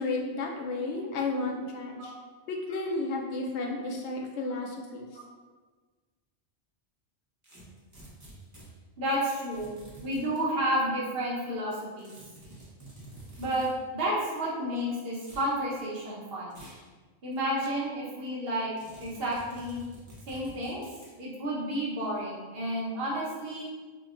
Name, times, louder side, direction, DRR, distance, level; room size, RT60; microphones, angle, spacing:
voice 1, 0.0-2.1 2.5-5.1, left 3 dB, 80° left, 0 dB, 0.9 m, -32 dB
sound 1, 7.4-8.7 9.5-10.4 12.0-13.7 15.2-15.5 16.5-16.9 17.3-17.4 18.8-21.2, right 1 dB, 20° right, 0.5 m, -49 dB
voice 2, 9.0-9.7 10.0-12.1 13.4-16.6 17.2-19.8 20.3-20.8 21.2-23.7, right 1 dB, 60° right, -6 dB, 1.0 m, -31 dB
4.8 x 2.2 x 2.4 m, 1.4 s
omnidirectional pair, 1.1 m